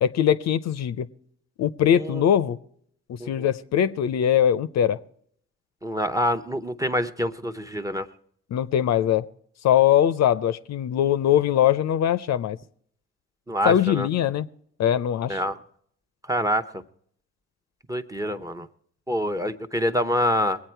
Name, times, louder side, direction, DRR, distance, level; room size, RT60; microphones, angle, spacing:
voice 1, 0.0-1.1 1.6-2.6 3.1-5.0 8.5-9.3 9.6-12.6 13.6-14.5 14.8-15.4, left 10 dB, 65° left, 14 dB, 0.6 m, -21 dB
voice 2, 1.9-2.2 3.2-3.5 5.8-8.1 13.5-14.1 15.3-15.6 16.3-16.6 17.9-18.7 19.1-20.6, equal, 10° right, 7 dB, 0.8 m, -26 dB
21.5 x 8.6 x 4.5 m, 0.66 s
supercardioid pair, 55°, 30 cm